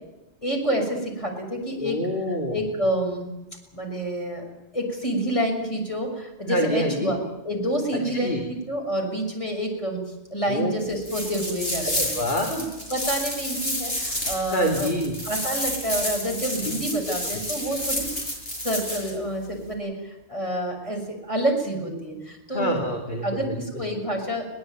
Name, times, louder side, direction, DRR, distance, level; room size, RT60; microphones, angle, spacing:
voice 1, 0.4-2.0 2.3-3.3 3.7-7.2 7.4-10.0 10.3-12.1 12.5-14.9 15.2-18.1 18.5-22.8 23.2-24.5, right 1 dB, 30° left, 1 dB, 6.4 m, -28 dB
voice 2, 1.8-2.6 6.5-7.1 7.9-8.4 10.5-10.7 11.8-12.5 14.5-15.1 22.5-23.6, equal, 45° left, 1 dB, 3.1 m, -26 dB
sound 1, 11.0-19.1, left 1 dB, 75° left, 6.8 m, -30 dB
22.0 x 19.0 x 9.1 m, 0.99 s
omnidirectional pair, 1.2 m